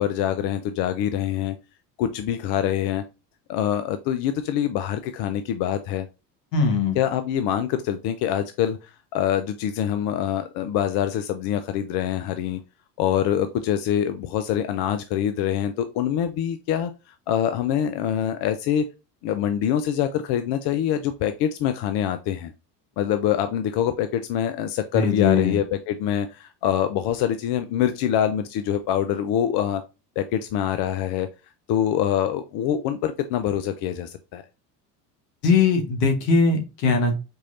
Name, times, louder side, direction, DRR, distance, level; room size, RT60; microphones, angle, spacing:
voice 1, 0.0-1.6 2.0-3.0 3.5-6.1 6.9-12.6 13.0-16.9 17.3-18.9 19.2-22.5 23.0-29.8 30.2-31.3 31.7-34.4, left 10 dB, 55° left, 9 dB, 0.6 m, -25 dB
voice 2, 6.5-7.0 24.9-25.6 35.4-37.1, left 4 dB, 80° left, 5 dB, 1.4 m, -20 dB
4.5 x 3.1 x 2.6 m, 0.28 s
hypercardioid pair, 75°, 47 cm